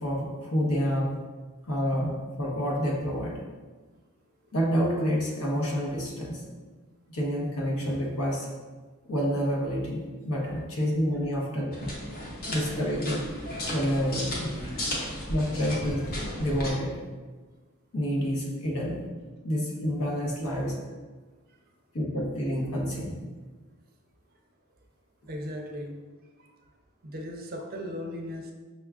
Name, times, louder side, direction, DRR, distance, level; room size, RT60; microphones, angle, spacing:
voice 1, 0.0-1.2 1.6-3.4 4.5-6.4 7.1-8.5 9.1-11.7 12.4-13.3 13.7-14.5 15.3-16.1 16.4-17.0 17.9-19.0 19.4-20.8 21.9-23.2, equal, 75° left, -3 dB, 0.9 m, -28 dB
sound 1, 11.7-16.7, left 1 dB, 40° left, 0.7 m, -34 dB
voice 2, 12.4-12.8 14.6-14.9 21.5-21.6 25.3-26.0 26.4-26.6 27.0-28.5, equal, 40° right, 2 dB, 0.4 m, -38 dB
5.7 x 2.3 x 2.3 m, 1.4 s
head